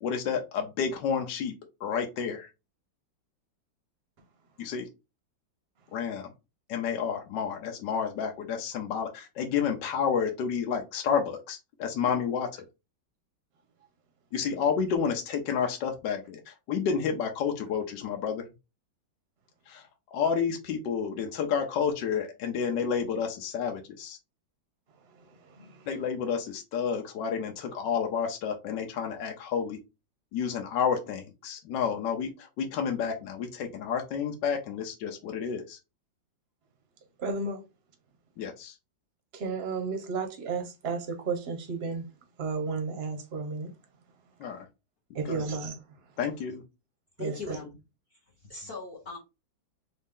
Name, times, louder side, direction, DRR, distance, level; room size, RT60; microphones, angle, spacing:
voice 1, 0.0-1.5 1.8-2.5 4.6-4.9 5.9-6.3 6.7-12.7 14.3-18.4 19.7-24.2 25.9-29.8 30.3-35.8 38.4-38.8 44.4-44.7 45.3-45.4 46.2-46.6, left 7 dB, 70° left, 1.3 m, -30 dB
voice 2, 25.3-25.9 37.2-37.6 39.3-42.1 42.4-43.7 45.1-45.8 47.2-47.6, right 4 dB, 45° right, 0.9 m, -33 dB
voice 3, 47.2-47.8 48.4-49.2, left 3 dB, 40° left, 1.0 m, -39 dB
4.1 x 2.7 x 3.6 m
omnidirectional pair, 2.1 m